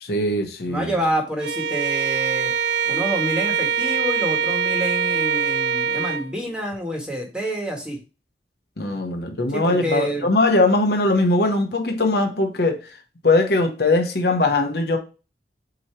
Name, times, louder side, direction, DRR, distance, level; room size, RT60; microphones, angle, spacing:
voice 1, 0.0-0.9 8.8-12.8 13.2-15.0, left 2 dB, 60° left, 1.0 m, -20 dB
voice 2, 0.7-2.5 2.8-8.0 9.5-10.3, equal, 5° right, 1.5 m, -27 dB
Bowed string instrument, 1.4-6.3, right 7 dB, 70° right, 0.4 m, -23 dB
7.8 x 3.0 x 4.4 m
head